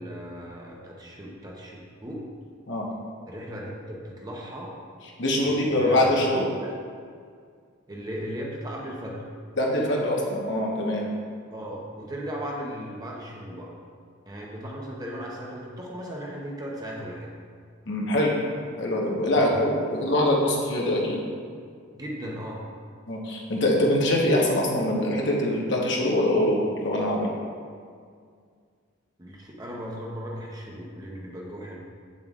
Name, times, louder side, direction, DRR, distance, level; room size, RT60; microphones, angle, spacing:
voice 1, 0.0-2.3 3.3-4.8 5.4-6.3 6.6-6.7 7.9-9.3 11.5-13.7 14.3-17.3 19.3-19.6 21.9-22.6 29.2-31.8, equal, 20° right, -2 dB, 0.8 m, -37 dB
voice 2, 5.2-6.5 9.6-11.0 17.9-18.4 18.8-21.2 23.1-27.3, left 1 dB, 65° left, -2 dB, 1.1 m, -23 dB
8.3 x 7.2 x 2.4 m, 2.1 s
head